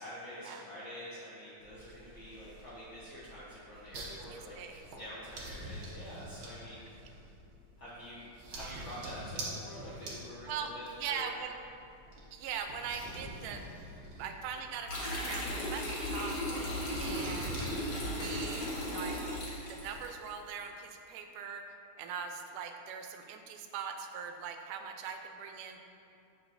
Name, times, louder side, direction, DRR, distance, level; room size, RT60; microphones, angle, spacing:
voice 1, 0.0-4.5 5.0-7.2 7.8-11.3 16.7-17.0, equal, 70° left, -9 dB, 1.1 m, -47 dB
sound 1, 1.6-20.0, right 1 dB, 65° right, 1.2 m, -47 dB
voice 2, 4.1-4.8 8.6-8.9 10.5-10.7 11.0-11.5 12.3-13.6 14.2-16.4 17.0-17.6 18.1-19.2 19.7-25.8, right 7 dB, 85° right, 5 dB, 2.1 m, -41 dB
sound 2, 14.9-20.1, left 1 dB, 50° left, 1.4 m, -36 dB
8.0 x 6.4 x 2.6 m, 2.6 s
omnidirectional pair, 3.6 m